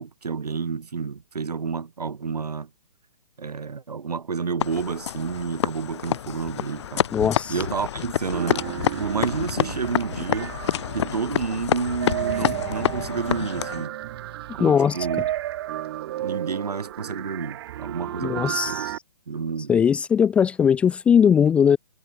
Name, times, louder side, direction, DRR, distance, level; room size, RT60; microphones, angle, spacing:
voice 1, 0.0-2.7 3.4-7.1 7.5-8.6 8.9-10.5 10.9-13.9 14.5-15.3 16.2-18.9 19.3-19.7, right 5 dB, 75° right, 3.0 m, -30 dB
sound 1, 4.6-13.9, left 10 dB, 45° left, 0.7 m, -28 dB
voice 2, 7.1-7.6 14.6-15.0 18.2-19.0 19.7-21.8, left 7 dB, 5° left, 0.5 m, -19 dB
sound 2, 8.3-19.0, right 13 dB, 40° right, 4.5 m, -33 dB
hypercardioid pair, 145°, 20 cm